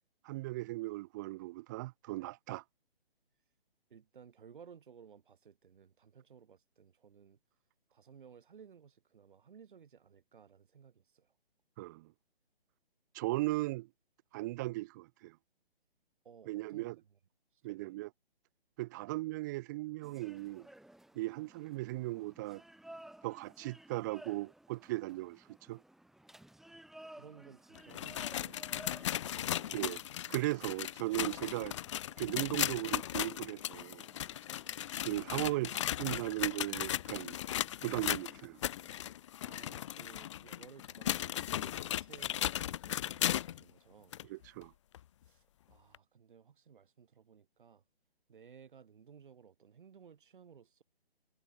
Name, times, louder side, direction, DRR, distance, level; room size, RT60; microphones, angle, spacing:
voice 1, 0.2-2.6 11.8-12.1 13.1-13.9 14.3-15.4 16.5-17.0 17.6-18.1 18.8-20.7 21.1-22.6 23.2-25.8 29.7-30.0 30.3-31.7 32.2-34.1 35.0-37.4 37.8-38.6 44.3-44.7, right 19 dB, 20° right, 0.9 m, -37 dB
voice 2, 3.9-7.4 7.9-11.3 16.2-16.9 17.5-18.0 26.7-26.8 27.0-29.8 30.6-30.7 39.4-44.1 45.3-47.8 48.3-50.8, right 7 dB, 55° right, 4.5 m, -58 dB
sound 1, 20.0-39.1, right 1 dB, ahead, 2.5 m, -58 dB
sound 2, 27.8-43.6 44.1-44.2 44.9-45.0 45.9-46.0, left 12 dB, 30° left, 1.1 m, -37 dB
figure-of-eight pair, 150°, 31 cm